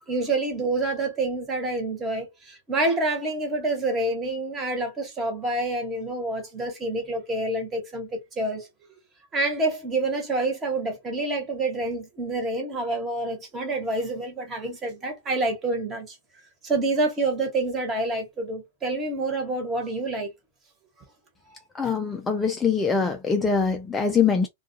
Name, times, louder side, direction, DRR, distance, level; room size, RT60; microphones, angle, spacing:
voice 1, 0.1-8.7 9.3-16.2 16.6-20.3 21.5-21.6, right 2 dB, 20° right, 1.2 m, -27 dB
voice 2, 21.7-24.5, left 5 dB, 15° left, 0.4 m, -23 dB
2.3 x 2.2 x 2.7 m
hypercardioid pair, 130°, 0 cm